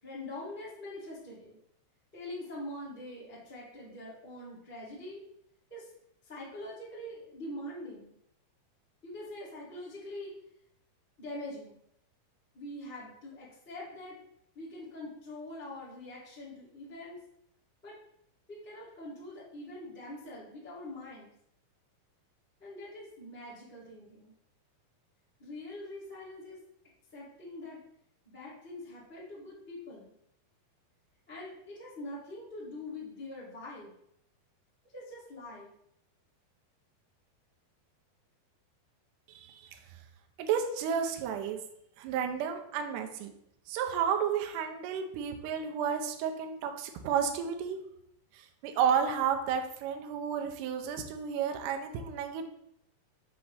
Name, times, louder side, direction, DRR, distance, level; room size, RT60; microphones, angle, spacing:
voice 1, 0.0-1.6 2.1-5.2 5.7-5.9 6.2-8.1 9.0-10.3 11.2-11.8 12.5-14.2 14.5-17.2 17.8-17.9 18.5-21.3 22.6-24.3 25.4-26.6 27.1-27.8 28.2-30.1 31.3-33.9 34.9-35.7, left 1 dB, 5° left, -8 dB, 1.0 m, -44 dB
voice 2, 39.3-39.8 40.4-41.6 42.0-43.3 43.7-47.8 48.3-52.5, right 7 dB, 85° right, 5 dB, 1.9 m, -32 dB
6.3 x 2.9 x 5.6 m, 0.74 s
omnidirectional pair, 4.5 m